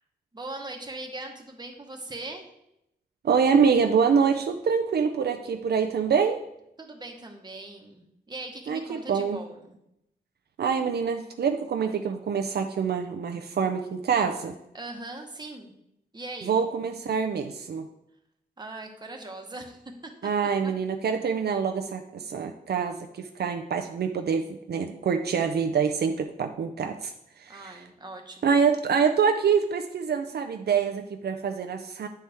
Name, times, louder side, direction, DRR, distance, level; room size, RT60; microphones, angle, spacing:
voice 1, 0.3-2.4 6.8-9.8 14.7-15.7 16.1-16.6 18.6-20.7 27.5-28.6, right 2 dB, 25° right, 3 dB, 1.1 m, -40 dB
voice 2, 3.2-6.4 8.7-9.4 10.6-14.5 16.5-17.9 20.2-27.1 27.4-27.7 28.4-32.1, right 6 dB, 75° right, 5 dB, 0.5 m, -25 dB
9.0 x 4.3 x 3.5 m, 0.81 s
wide cardioid pair, 85°, 17 cm